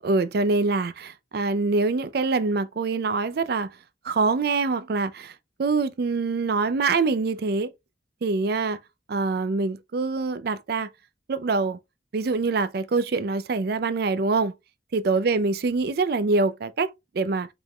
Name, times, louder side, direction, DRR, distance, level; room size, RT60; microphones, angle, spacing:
voice 1, 0.0-3.7 4.0-7.7 8.2-8.8 9.1-10.9 11.3-11.8 12.1-14.5 14.9-17.5, right 3 dB, 55° right, 0.4 m, -25 dB
4.9 x 3.7 x 2.2 m
head